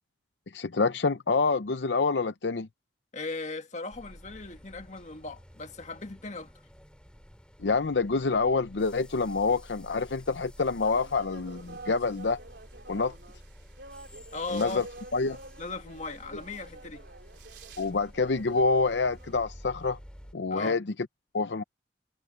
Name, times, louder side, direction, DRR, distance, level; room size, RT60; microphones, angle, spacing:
voice 1, 0.5-2.7 7.6-12.4 12.9-13.1 14.5-14.8 15.1-15.4 17.8-20.0 20.3-20.8 21.3-21.6, left 4 dB, 80° left, 0.7 m, -27 dB
voice 2, 3.1-6.5 11.7-11.8 14.3-14.8 15.6-17.1 20.5-20.8, left 3 dB, 40° left, 1.7 m, -38 dB
sound 1, 3.9-20.3, equal, 5° left, 3.2 m, -51 dB
sound 2, 10.8-19.4, right 2 dB, 70° right, 3.6 m, -48 dB
head